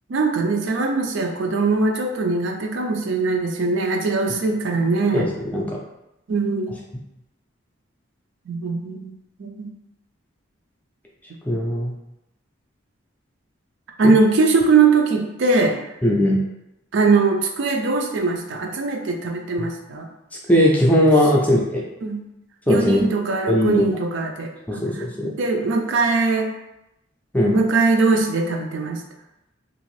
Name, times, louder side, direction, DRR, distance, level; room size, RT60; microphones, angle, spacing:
voice 1, 0.1-5.3 6.3-6.8 8.5-9.7 14.0-15.8 16.9-20.1 22.0-22.2 22.7-26.5 27.5-29.0, right 4 dB, 70° right, 2 dB, 0.4 m, -21 dB
voice 2, 5.1-5.8 11.5-11.9 16.0-16.4 19.6-19.7 20.5-21.8 22.7-23.0 23.5-23.9 24.7-25.3 27.3-27.6, left 1 dB, 10° left, -3 dB, 0.4 m, -18 dB
2.9 x 2.5 x 3.1 m, 0.90 s
head